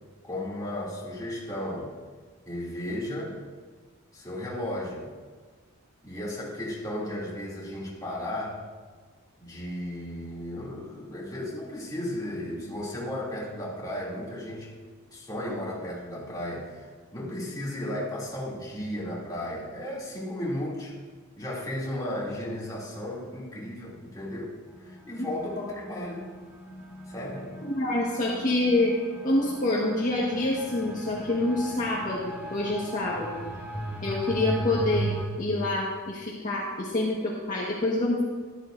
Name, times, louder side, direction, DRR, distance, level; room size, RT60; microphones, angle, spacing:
voice 1, 0.2-1.9 2.5-3.4 4.1-5.1 6.0-8.6 9.4-14.7 15.1-20.9 21.4-24.6 24.8-26.3 27.1-27.5, left 1 dB, 15° left, -6 dB, 2.7 m, -34 dB
sound 1, 24.7-35.2, right 1 dB, 10° right, 2.8 m, -37 dB
voice 2, 27.6-28.9 29.2-33.3 34.0-38.2, left 2 dB, 40° left, -5 dB, 1.4 m, -27 dB
13.5 x 12.0 x 2.6 m, 1.5 s
head